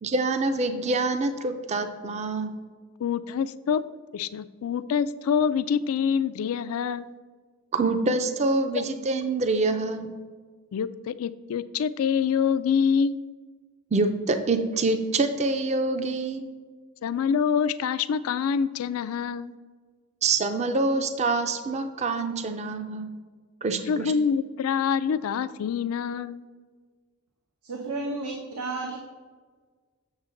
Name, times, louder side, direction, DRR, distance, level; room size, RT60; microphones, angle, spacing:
voice 1, 0.0-2.5 7.7-10.1 13.9-16.4 20.2-23.1 23.6-24.1, right 3 dB, 30° right, 8 dB, 0.4 m, -26 dB
voice 2, 3.0-3.8 4.1-7.1 8.8-8.9 10.7-13.2 17.0-19.5 23.9-26.5, left 7 dB, 70° left, 14 dB, 0.3 m, -26 dB
voice 3, 27.6-29.0, right 3 dB, 85° right, 1 dB, 0.8 m, -32 dB
7.2 x 6.5 x 3.8 m, 1.5 s
head